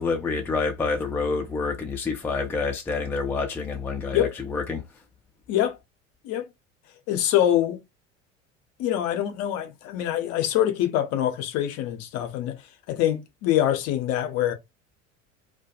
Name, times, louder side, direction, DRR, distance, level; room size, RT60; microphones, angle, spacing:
voice 1, 0.0-4.8, left 4 dB, 5° left, 0.3 m, -28 dB
voice 2, 5.5-5.8 6.2-6.5 7.1-7.8 8.8-14.5, left 12 dB, 45° left, 0.6 m, -25 dB
2.2 x 2.2 x 2.7 m
figure-of-eight pair, 70°, 37 cm